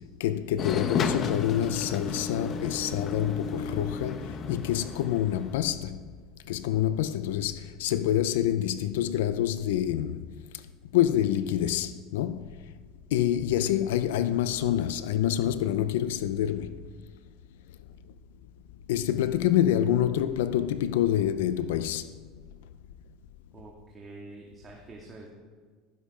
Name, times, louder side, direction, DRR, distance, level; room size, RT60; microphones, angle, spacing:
voice 1, 0.2-6.0 6.5-10.2 10.9-12.5 13.1-16.8 18.9-22.1, left 11 dB, 90° left, 0.6 m, -27 dB
sound 1, 0.6-5.6, left 5 dB, 40° left, 1.1 m, -33 dB
voice 2, 23.5-25.3, right 2 dB, 25° right, 2.3 m, -46 dB
15.0 x 13.5 x 5.0 m
supercardioid pair, 120°, 0 cm